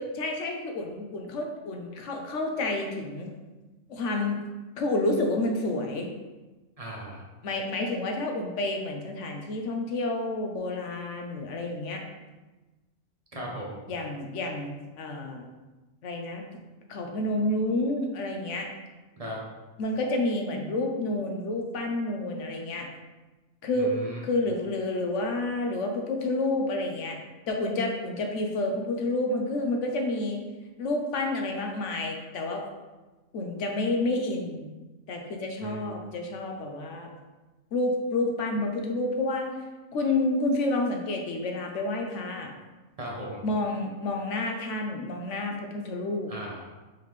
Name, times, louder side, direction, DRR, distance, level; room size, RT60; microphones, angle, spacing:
voice 1, 0.0-3.3 3.9-4.4 4.8-6.1 7.4-12.0 13.9-15.5 16.0-16.5 16.9-18.7 19.8-22.8 23.6-23.9 24.2-27.2 27.5-30.4 30.8-32.6 33.3-34.6 35.1-37.1 37.7-39.5 39.9-42.5 43.4-46.3, left 2 dB, 65° left, 2 dB, 0.9 m, -29 dB
voice 2, 6.8-7.2 13.3-13.8 19.2-19.4 23.8-24.2 35.6-35.8 43.0-43.4 46.3-46.6, right 1 dB, 40° right, -3 dB, 0.5 m, -37 dB
4.7 x 3.6 x 3.1 m, 1.2 s
omnidirectional pair, 1.5 m